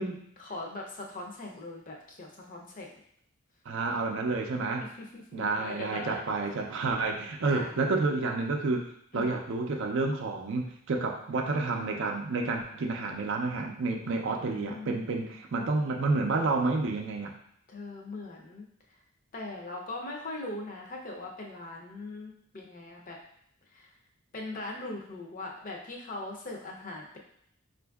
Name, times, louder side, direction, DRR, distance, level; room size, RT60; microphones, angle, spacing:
voice 1, 0.4-2.9 4.8-6.2 7.4-7.7 9.1-9.4 14.0-15.2 17.7-18.7 19.3-23.2 23.7-23.9 24.3-27.2, left 2 dB, 40° left, 0 dB, 0.5 m, -40 dB
voice 2, 3.7-4.8 5.3-8.9 9.1-17.3, right 3 dB, 60° right, 3 dB, 0.4 m, -30 dB
4.3 x 2.5 x 2.3 m, 0.70 s
head